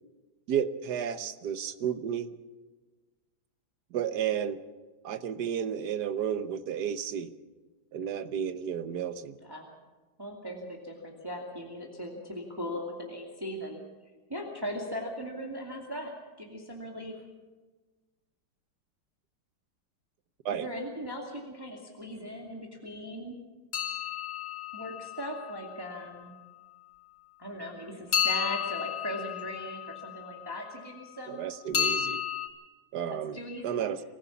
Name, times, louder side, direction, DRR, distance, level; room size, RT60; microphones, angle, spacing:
voice 1, 0.5-2.3 3.9-4.6 5.0-7.3 7.9-9.4 20.4-20.7 31.3-32.2 32.9-33.4 33.6-34.0, right 8 dB, 60° right, 12 dB, 1.4 m, -32 dB
voice 2, 10.2-13.8 14.3-16.1 16.4-17.1 20.5-23.4 24.7-26.3 27.4-31.5 33.1-33.8, equal, 10° right, 0 dB, 2.4 m, -38 dB
sound 1, 23.7-25.8 28.1-30.5 31.7-32.5, left 8 dB, 60° left, 3.5 m, -32 dB
25.0 x 15.0 x 7.1 m, 1.3 s
omnidirectional pair, 2.1 m